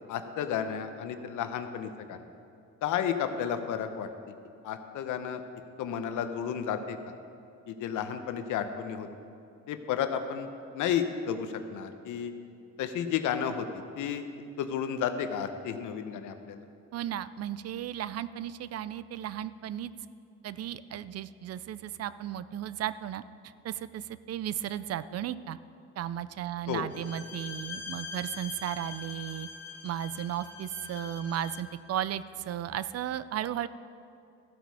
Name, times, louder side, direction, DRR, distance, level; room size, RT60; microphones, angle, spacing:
voice 1, 0.1-2.2 2.8-4.1 4.6-5.4 5.8-7.0 7.7-9.1 9.7-10.5 10.7-12.3 12.8-13.7 14.0-14.3 14.6-16.6 26.7-26.9, left 8 dB, 80° left, 8 dB, 0.8 m, -32 dB
voice 2, 16.9-19.9 20.4-23.2 23.6-25.6 26.0-29.5 29.8-33.7, right 11 dB, 55° right, 16 dB, 0.4 m, -35 dB
Bowed string instrument, 26.9-31.7, left 4 dB, 60° left, 1.4 m, -43 dB
14.0 x 8.3 x 4.7 m, 2.5 s
cardioid pair, 90°, 30 cm